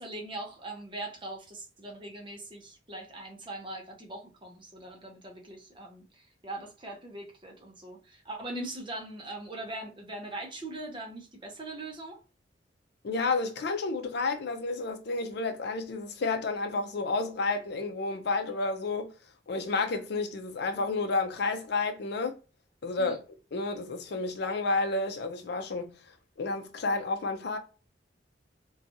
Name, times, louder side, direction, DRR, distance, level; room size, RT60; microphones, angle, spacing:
voice 1, 0.0-12.2 23.0-23.2, right 2 dB, 25° right, 0.6 m, -41 dB
voice 2, 13.0-19.1 19.5-22.4 22.8-23.2 23.5-26.0 26.4-27.6, left 3 dB, 60° left, 0.5 m, -30 dB
2.8 x 2.3 x 2.6 m
head